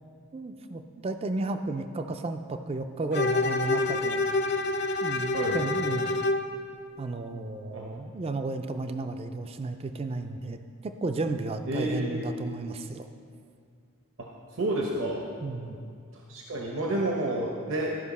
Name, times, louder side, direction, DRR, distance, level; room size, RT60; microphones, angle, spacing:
voice 1, 0.3-4.2 5.0-6.2 7.0-13.1 15.4-15.8, right 3 dB, 25° right, 8 dB, 0.3 m, -33 dB
Bowed string instrument, 3.1-6.5, left 2 dB, 50° left, 0.4 m, -27 dB
voice 2, 11.7-12.2 14.6-15.2 16.3-18.0, right 1 dB, 65° right, -1 dB, 0.8 m, -29 dB
13.5 x 5.3 x 4.1 m, 2.3 s
head